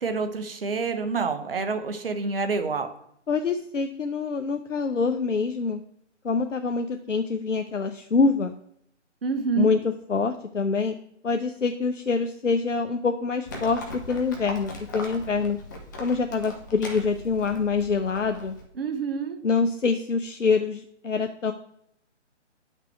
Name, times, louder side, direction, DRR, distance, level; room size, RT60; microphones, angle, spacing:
voice 1, 0.0-2.9 9.2-9.7 18.8-19.4, right 5 dB, 50° right, 8 dB, 1.0 m, -27 dB
voice 2, 3.3-5.8 6.2-8.6 9.6-10.9 11.2-15.6 16.0-18.5 19.4-21.5, left 4 dB, 85° left, 7 dB, 0.7 m, -25 dB
Livestock farm animals working animals, 13.5-18.6, left 1 dB, 15° left, 0.7 m, -39 dB
9.1 x 5.8 x 3.4 m, 0.70 s
figure-of-eight pair, 145°, 36 cm